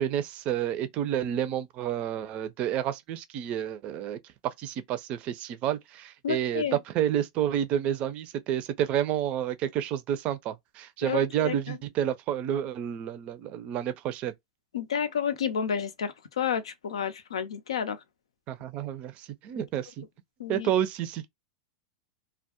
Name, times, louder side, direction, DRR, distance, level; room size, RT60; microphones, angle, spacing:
voice 1, 0.0-4.2 4.4-14.3 18.5-20.0 20.5-21.3, right 10 dB, 45° right, 0.4 m, -30 dB
voice 2, 6.2-6.8 11.0-11.8 14.7-18.0 20.4-20.7, left 7 dB, 90° left, 0.4 m, -30 dB
2.2 x 2.0 x 2.8 m
hypercardioid pair, 105°, 3 cm